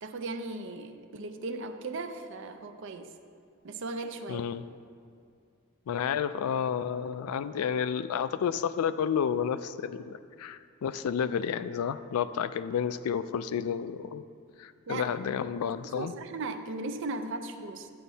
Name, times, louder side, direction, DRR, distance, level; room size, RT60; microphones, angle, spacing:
voice 1, 0.0-3.1 3.6-4.4 14.9-15.4 15.8-17.9, right 3 dB, 60° right, 8 dB, 0.5 m, -37 dB
voice 2, 4.3-4.6 5.9-14.2 14.6-16.1, left 7 dB, 90° left, 13 dB, 0.3 m, -31 dB
11.5 x 8.9 x 2.7 m, 2.3 s
head